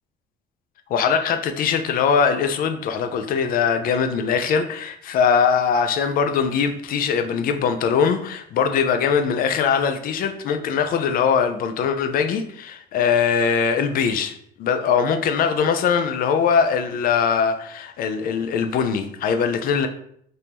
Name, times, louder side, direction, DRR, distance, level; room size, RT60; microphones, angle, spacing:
voice 1, 0.9-19.9, left 6 dB, 60° left, 8 dB, 0.5 m, -21 dB
3.6 x 2.6 x 2.9 m, 0.66 s
cardioid pair, 110°, 17 cm